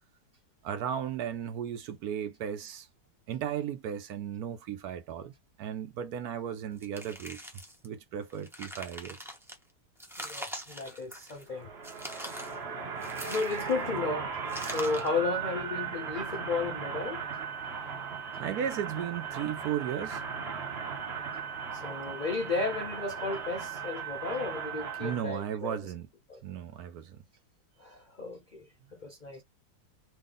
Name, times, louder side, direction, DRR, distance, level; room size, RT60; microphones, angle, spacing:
voice 1, 0.6-2.9 3.3-5.3 5.6-7.4 7.8-9.2 12.8-13.2 18.4-20.2 25.0-26.1 26.4-27.2, right 9 dB, 70° right, 1.0 m, -35 dB
sound 1, 6.8-7.9 8.3-9.6 10.0-11.5 11.8-12.6 13.0-13.9 14.5-15.2, equal, 5° right, 0.3 m, -43 dB
voice 2, 10.2-11.7 13.3-14.3 14.6-17.2 21.7-25.8 26.3-26.4 27.8-28.7 28.9-29.4, left 4 dB, 70° left, 0.4 m, -34 dB
sound 2, 11.5-25.2, right 6 dB, 45° right, 1.0 m, -37 dB
3.2 x 2.4 x 3.6 m
omnidirectional pair, 1.9 m